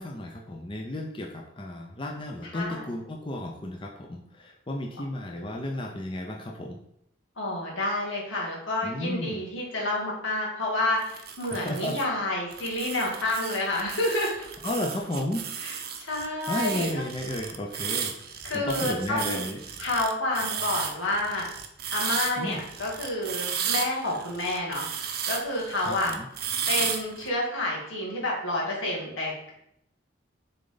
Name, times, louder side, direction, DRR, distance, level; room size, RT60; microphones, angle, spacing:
voice 1, 0.0-6.8 8.8-9.4 11.5-12.0 14.6-15.4 16.5-18.1 18.5-19.8 22.4-22.6 25.8-26.3, left 1 dB, 25° left, 1 dB, 0.6 m, -33 dB
voice 2, 2.4-2.9 7.4-14.5 15.6-16.9 18.4-19.4 19.8-21.5 21.9-24.9 25.3-26.1 26.7-29.5, left 1 dB, 90° left, -3 dB, 2.3 m, -29 dB
sound 1, 11.0-12.0 12.5-27.3, right 8 dB, 50° right, 0.7 m, -34 dB
6.8 x 3.9 x 3.9 m, 0.77 s
head